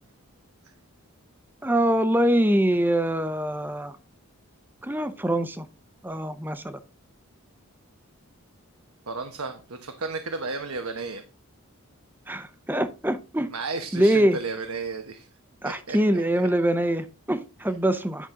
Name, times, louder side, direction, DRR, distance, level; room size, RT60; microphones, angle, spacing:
voice 1, 1.6-4.0 4.8-5.7 6.0-6.8 12.3-13.5 13.9-14.4 15.6-18.3, right 1 dB, 10° right, 0.7 m, -24 dB
voice 2, 9.1-11.2 13.5-15.3 15.6-16.0 16.3-16.5, right 4 dB, 80° right, 1.1 m, -33 dB
11.0 x 6.0 x 3.7 m
head